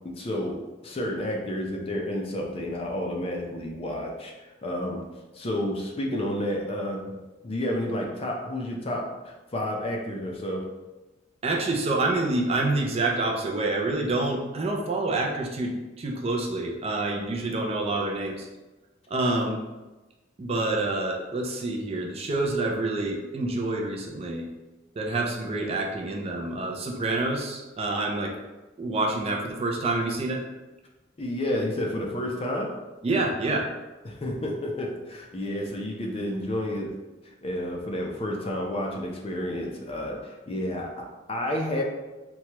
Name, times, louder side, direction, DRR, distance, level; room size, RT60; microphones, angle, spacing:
voice 1, 0.0-5.0 5.3-7.2 7.4-10.7 31.2-32.8 34.0-36.9 37.2-41.8, left 1 dB, 30° left, 0 dB, 0.4 m, -30 dB
voice 2, 11.4-18.5 19.1-19.6 20.4-24.5 25.0-28.4 28.8-30.4 33.0-33.7, right 2 dB, 30° right, 0 dB, 0.4 m, -27 dB
3.0 x 2.2 x 2.9 m, 1.1 s
head